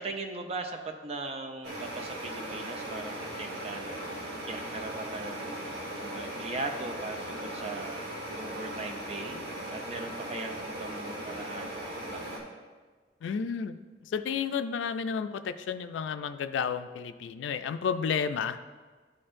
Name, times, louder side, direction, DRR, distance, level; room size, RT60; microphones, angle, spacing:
voice 1, 0.0-8.0 8.3-12.4, right 3 dB, 35° right, 5 dB, 0.4 m, -39 dB
sound 1, 1.6-12.4, right 1 dB, 60° right, 1.4 m, -38 dB
voice 2, 13.2-18.6, left 6 dB, 85° left, 11 dB, 0.3 m, -32 dB
11.5 x 4.3 x 2.5 m, 1.4 s
head